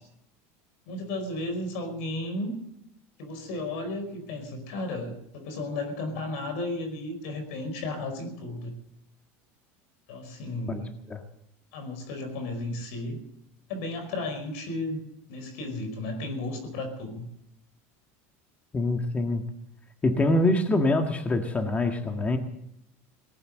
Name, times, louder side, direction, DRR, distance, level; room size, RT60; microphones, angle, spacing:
voice 1, 0.9-2.6 3.2-8.7 10.1-10.9 11.7-13.2 13.7-17.3, left 2 dB, 75° left, 8 dB, 5.0 m, -34 dB
voice 2, 18.7-19.4 20.0-22.4, left 2 dB, 20° left, 5 dB, 1.6 m, -24 dB
18.5 x 9.5 x 7.8 m, 0.77 s
supercardioid pair, 120°, 7 cm